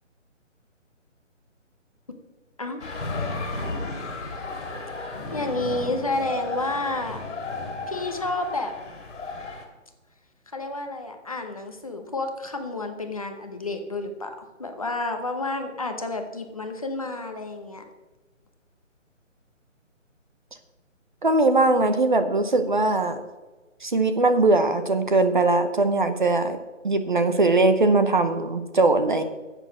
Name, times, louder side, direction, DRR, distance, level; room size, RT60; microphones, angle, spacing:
sound 1, 2.8-9.6, left 3 dB, 65° left, 3.2 m, -34 dB
voice 1, 5.3-7.2 7.9-8.7 10.5-14.3 14.6-17.8, left 2 dB, 30° left, 5 dB, 0.9 m, -30 dB
voice 2, 21.2-23.2 23.8-26.6 26.8-29.2, right 2 dB, 40° right, 9 dB, 0.8 m, -20 dB
10.5 x 8.0 x 6.2 m, 1.2 s
hypercardioid pair, 170°, 38 cm